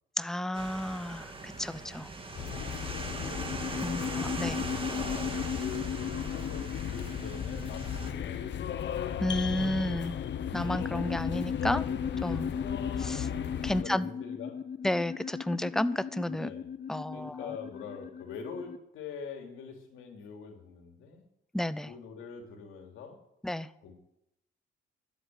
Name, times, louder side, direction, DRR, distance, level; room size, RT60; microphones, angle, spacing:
voice 1, 0.2-2.1 3.8-4.6 9.2-10.2 10.5-11.8 12.2-12.5 13.0-13.3 13.6-14.1 14.8-16.5 16.9-17.5 21.5-21.9 23.4-23.7, left 1 dB, ahead, 0.6 m, -32 dB
sound 1, 0.5-8.1, right 3 dB, 25° right, 2.2 m, -40 dB
sound 2, 2.3-13.8, left 9 dB, 65° left, 1.2 m, -36 dB
sound 3, 2.4-18.8, left 7 dB, 45° left, 0.7 m, -38 dB
voice 2, 3.7-4.1 4.9-8.9 12.3-12.6 13.6-14.6 16.3-16.7 17.1-21.2 21.8-23.2 23.8-24.0, left 6 dB, 90° left, 3.2 m, -44 dB
13.0 x 8.3 x 9.3 m
cardioid pair, 90°, 20 cm